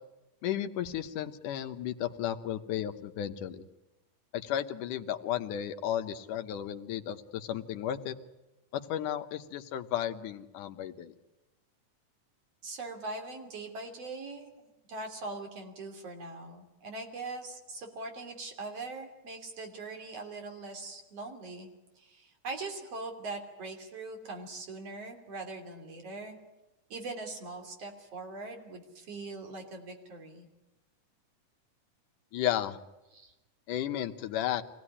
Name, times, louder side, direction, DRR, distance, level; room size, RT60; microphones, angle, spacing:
voice 1, 0.4-3.7 4.3-8.1 8.7-11.1 32.3-32.8 33.7-34.6, left 11 dB, 85° left, 8 dB, 2.6 m, -34 dB
voice 2, 12.6-14.5 14.9-21.7 22.0-26.4 26.9-30.5 33.1-33.3, right 3 dB, 50° right, 3 dB, 4.0 m, -41 dB
24.5 x 18.0 x 10.0 m, 1.0 s
omnidirectional pair, 3.5 m